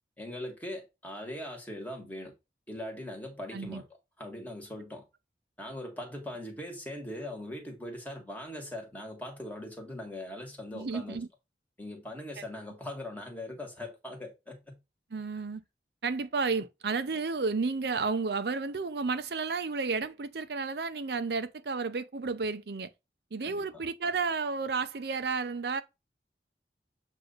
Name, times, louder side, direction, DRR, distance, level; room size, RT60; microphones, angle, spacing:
voice 1, 0.2-2.3 2.7-3.9 4.2-5.0 5.6-11.2 11.8-14.8 23.4-23.8, left 1 dB, 10° left, 1.6 m, -41 dB
voice 2, 10.7-11.3 15.1-15.6 16.0-22.9 23.3-25.8, right 4 dB, 70° right, 0.6 m, -32 dB
7.7 x 2.8 x 5.5 m
head